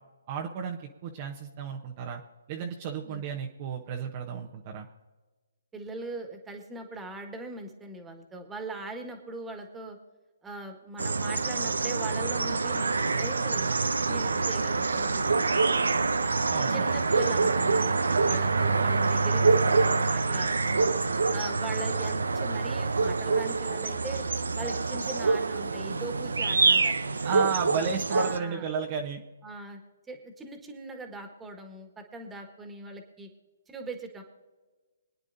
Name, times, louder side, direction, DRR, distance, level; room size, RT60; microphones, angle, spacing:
voice 1, 0.3-2.2 2.5-4.9 16.5-16.9 27.2-29.2, right 6 dB, 35° right, 2 dB, 1.0 m, -33 dB
voice 2, 5.7-10.0 10.4-16.2 16.7-18.0 18.3-20.9 21.3-24.3 24.5-27.3 27.8-28.7 29.4-29.8 30.1-33.3 33.7-34.2, right 2 dB, 10° right, 4 dB, 1.7 m, -41 dB
sound 1, 11.0-28.4, right 4 dB, 80° right, 0.7 m, -26 dB
26.0 x 9.7 x 2.7 m, 1.3 s
figure-of-eight pair, 140°, 0 cm